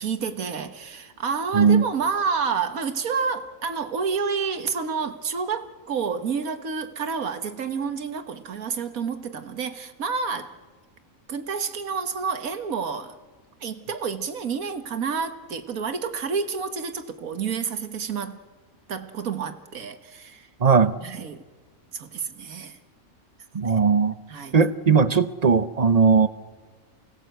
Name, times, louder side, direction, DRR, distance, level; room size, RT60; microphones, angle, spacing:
voice 1, 0.0-10.6 11.3-13.2 13.6-18.4 18.9-20.5 21.0-21.4 21.9-22.8 24.3-24.7, right 5 dB, 80° right, 1.8 m, -29 dB
voice 2, 20.6-20.9 23.5-24.2 24.5-26.3, right 5 dB, 35° right, 0.7 m, -18 dB
29.0 x 18.5 x 8.0 m
omnidirectional pair, 1.5 m